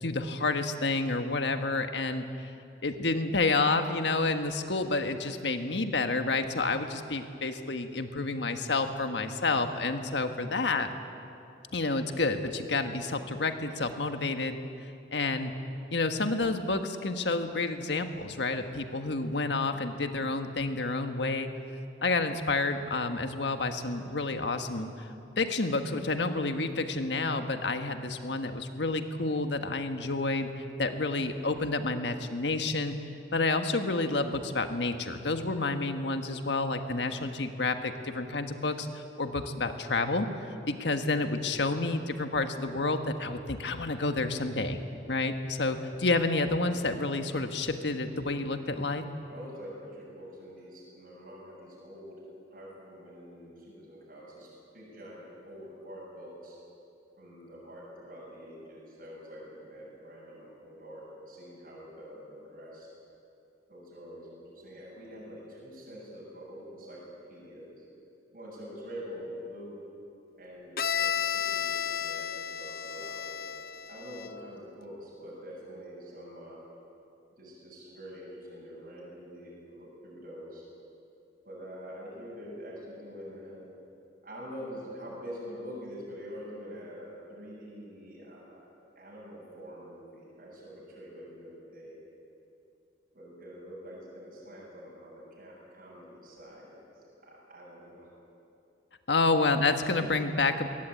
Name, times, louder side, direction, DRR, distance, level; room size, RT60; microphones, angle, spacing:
voice 1, 0.0-2.5 2.8-10.9 11.7-14.6 15.1-15.5 15.9-21.5 22.0-25.1 25.4-30.5 30.8-32.9 33.3-40.3 40.7-44.8 45.1-49.0 99.1-100.7, left 3 dB, 85° left, 7 dB, 1.5 m, -29 dB
voice 2, 49.3-52.2 52.5-56.6 57.2-62.9 63.7-67.9 68.3-69.8 70.4-73.5 73.9-76.6 77.4-80.7 81.4-83.7 84.2-88.7 89.0-92.0 93.1-98.1, equal, 50° right, -5 dB, 7.2 m, -45 dB
Bowed string instrument, 70.8-74.5, left 8 dB, 55° left, 0.6 m, -33 dB
22.5 x 18.0 x 9.0 m, 2.7 s
head